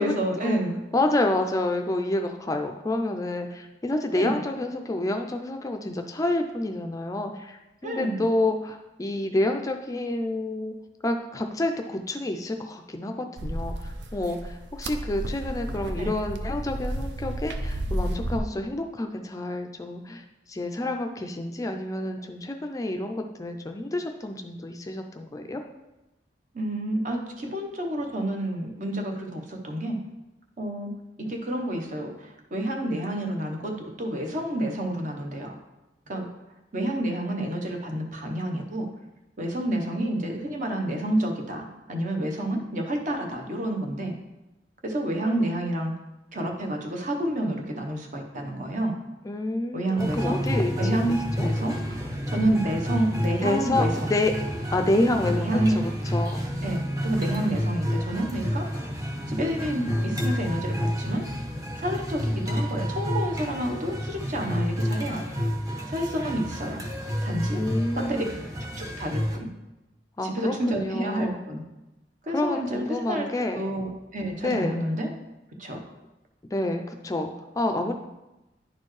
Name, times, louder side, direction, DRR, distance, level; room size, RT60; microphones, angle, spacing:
voice 1, 0.0-0.7 4.1-4.4 7.8-8.2 16.0-16.1 26.5-30.0 30.6-30.9 31.2-35.5 36.1-36.3 36.7-38.9 39.4-44.1 44.8-45.9 46.3-48.9 49.7-50.4 50.8-51.8 52.3-54.1 55.3-55.9 56.6-58.7 59.3-61.2 61.8-65.3 65.9-66.8 67.2-67.6 67.9-68.2 68.8-69.5 70.2-71.6 72.2-73.3 73.5-75.1 75.6-75.8, right 1 dB, 45° right, 2 dB, 1.0 m, -29 dB
voice 2, 0.9-10.7 11.0-25.6 49.2-51.5 53.4-54.3 54.7-56.5 67.5-68.4 70.2-71.4 72.3-73.6 74.4-74.8 76.4-77.9, left 2 dB, 20° left, 4 dB, 0.4 m, -28 dB
sound 1, 13.4-18.4, right 1 dB, 75° right, 0.5 m, -32 dB
sound 2, 50.0-69.4, equal, 20° right, 0.8 m, -29 dB
10.0 x 4.3 x 3.2 m, 0.99 s
head